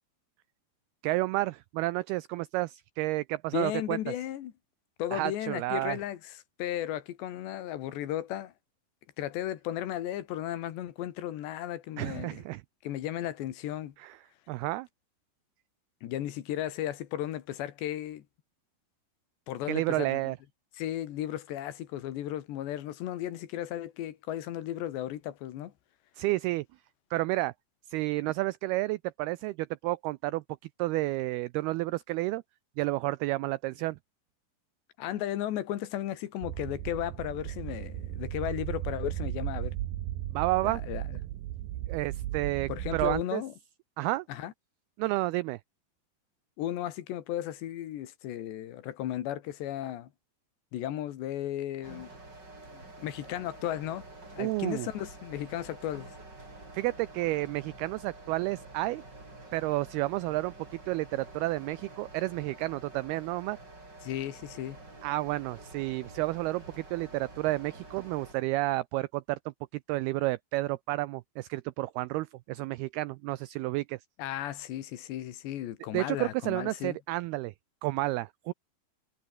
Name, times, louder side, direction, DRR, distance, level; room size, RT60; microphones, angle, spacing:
voice 1, 1.0-4.0 5.1-6.0 12.0-12.6 14.0-14.2 14.5-14.9 19.7-20.4 26.2-26.7 27.1-27.5 27.9-30.4 30.8-32.4 32.8-34.0 40.3-40.8 41.9-43.4 44.0-44.3 45.0-45.6 54.4-54.9 56.7-59.0 59.5-63.6 65.0-74.0 75.9-77.5 77.8-78.5, right 19 dB, 85° right, 2.2 m, -31 dB
voice 2, 3.5-4.5 5.0-8.5 9.2-12.4 12.8-14.0 16.0-18.3 19.5-20.3 20.8-25.7 35.0-39.8 40.6-41.0 42.7-43.5 44.3-44.5 46.6-50.1 50.7-52.1 52.7-54.1 54.3-56.1 64.0-64.8 74.2-77.0, left 12 dB, 75° left, 3.8 m, -35 dB
sound 1, 36.4-43.2, right 14 dB, 70° right, 2.5 m, -36 dB
sound 2, 51.8-68.3, right 2 dB, 20° right, 7.2 m, -49 dB
omnidirectional pair, 5.2 m